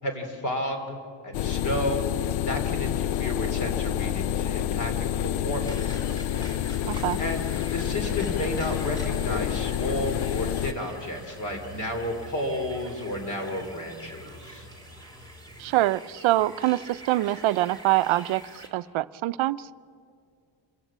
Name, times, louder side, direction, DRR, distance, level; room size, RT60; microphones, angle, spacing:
voice 1, 0.0-2.1 2.4-6.0 7.2-14.7, left 1 dB, 40° left, 5 dB, 3.0 m, -32 dB
sound 1, 1.3-10.7, left 11 dB, 80° left, 0.6 m, -28 dB
sound 2, 2.8-15.9, left 2 dB, 60° left, 6.8 m, -47 dB
sound 3, 5.6-18.7, right 1 dB, 10° left, 2.7 m, -46 dB
voice 2, 6.8-7.2 15.6-19.7, right 16 dB, 80° right, 15 dB, 0.6 m, -25 dB
27.0 x 15.5 x 7.4 m, 2.3 s
cardioid pair, 155°, 47 cm